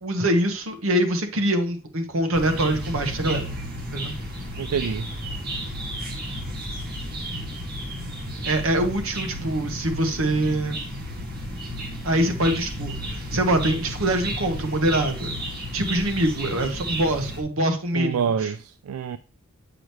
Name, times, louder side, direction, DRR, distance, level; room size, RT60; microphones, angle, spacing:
voice 1, 0.0-3.5 3.9-4.2 8.4-10.8 12.0-15.3 15.7-18.5, right 1 dB, 70° right, 1.1 m, -24 dB
sound 1, 2.3-17.4, equal, 45° right, 1.8 m, -33 dB
voice 2, 4.6-5.1 17.9-19.2, right 7 dB, 90° right, 0.3 m, -27 dB
7.9 x 5.0 x 3.1 m
head